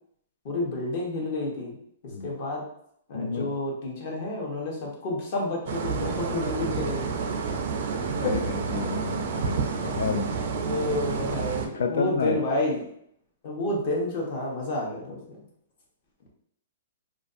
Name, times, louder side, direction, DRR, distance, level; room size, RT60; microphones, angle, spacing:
voice 1, 0.4-1.8 2.2-2.6 3.1-7.4 8.2-8.4 9.8-9.9 10.5-12.9 13.4-15.4, left 1 dB, 45° left, -3 dB, 0.9 m, -30 dB
voice 2, 3.1-3.5 8.1-10.3 11.7-12.4, left 5 dB, 75° left, 6 dB, 0.3 m, -30 dB
sound 1, 5.7-11.7, right 5 dB, 55° right, 0.4 m, -29 dB
2.5 x 2.3 x 2.5 m, 0.69 s
hypercardioid pair, 150°, 0 cm